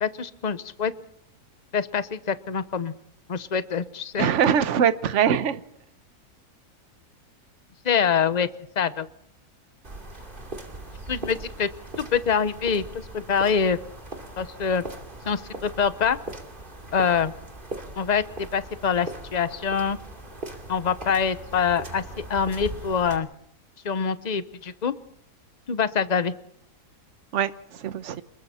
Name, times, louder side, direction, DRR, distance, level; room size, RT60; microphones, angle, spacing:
voice 1, 0.0-0.9 1.7-2.9 3.3-4.3 7.8-8.5 8.8-9.1 11.1-11.7 12.0-12.8 13.1-13.8 14.4-14.8 15.3-16.2 16.9-17.3 18.0-20.0 20.7-22.0 22.3-23.3 23.8-24.9 25.7-26.3, left 6 dB, 35° left, 0.8 m, -25 dB
voice 2, 4.2-5.6 27.3-28.2, right 8 dB, 50° right, 1.2 m, -23 dB
sound 1, 9.8-23.2, right 2 dB, 30° right, 2.9 m, -40 dB
28.0 x 21.5 x 4.3 m
omnidirectional pair, 1.7 m